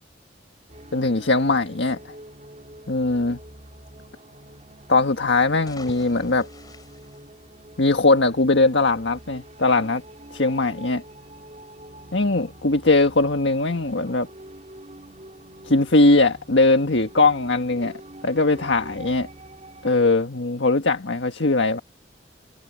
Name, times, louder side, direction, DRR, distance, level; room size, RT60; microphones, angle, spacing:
sound 1, 0.7-20.0, right 1 dB, 40° right, 4.2 m, -45 dB
voice 1, 0.9-2.0 2.9-3.4 4.9-6.5 7.8-10.0 10.3-11.0 12.1-14.3 15.6-19.3 19.8-21.8, left 2 dB, 90° left, 1.6 m, -20 dB
sound 2, 5.6-8.1, left 2 dB, 20° left, 4.6 m, -47 dB
head